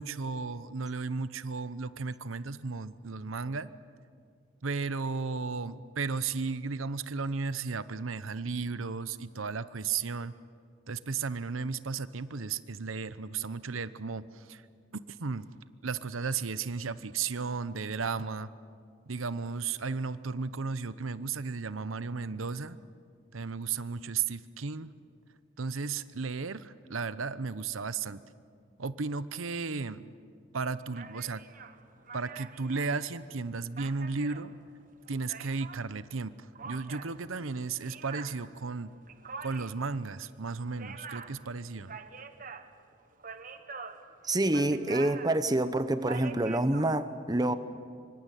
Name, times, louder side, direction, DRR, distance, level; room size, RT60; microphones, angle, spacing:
voice 1, 0.0-3.7 4.6-10.3 10.9-14.6 15.1-15.4 15.8-18.5 19.1-22.8 23.3-24.9 25.6-28.2 28.8-30.1 30.5-31.4 32.1-34.5 35.1-36.3 36.6-38.9 39.4-41.9, right 4 dB, 90° right, 14 dB, 0.9 m, -34 dB
sound 1, 30.9-35.9 36.5-46.9, right 5 dB, 40° right, 1.3 m, -46 dB
voice 2, 44.2-47.5, right 1 dB, 20° right, 11 dB, 1.0 m, -27 dB
26.0 x 24.5 x 9.2 m, 2.2 s
head